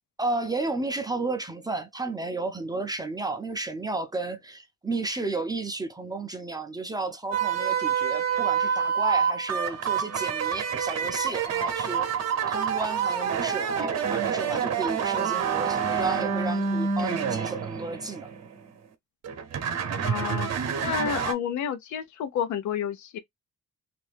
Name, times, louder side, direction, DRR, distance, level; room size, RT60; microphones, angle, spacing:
voice 1, 0.2-12.1 12.5-18.3, right 3 dB, 15° right, 0.5 m, -32 dB
sound 1, 7.3-18.7 19.2-21.3, right 7 dB, 60° right, 0.8 m, -27 dB
voice 2, 20.0-20.5 20.8-23.2, left 9 dB, 70° left, 0.6 m, -30 dB
2.6 x 2.6 x 3.3 m
cardioid pair, 90°, 30 cm